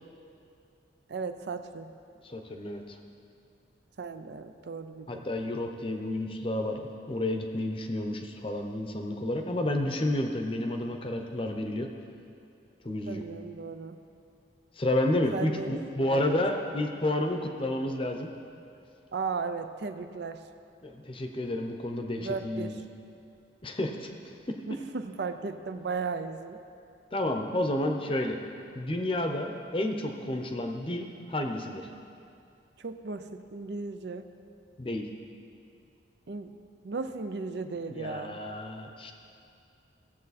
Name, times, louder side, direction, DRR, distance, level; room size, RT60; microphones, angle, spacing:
voice 1, 1.1-1.9 4.0-5.3 13.1-14.0 15.3-15.8 16.1-16.3 19.1-20.4 22.2-22.8 24.7-26.6 32.8-34.3 36.3-36.6 36.8-38.4, right 4 dB, 65° right, 9 dB, 0.5 m, -36 dB
voice 2, 2.2-3.0 5.1-11.9 12.8-13.2 14.8-18.3 20.8-22.8 23.6-24.1 24.5-24.6 27.1-28.4 28.7-31.8 34.8-35.1 37.9-39.1, left 1 dB, 30° left, 4 dB, 0.7 m, -30 dB
16.0 x 7.5 x 4.1 m, 2.5 s
head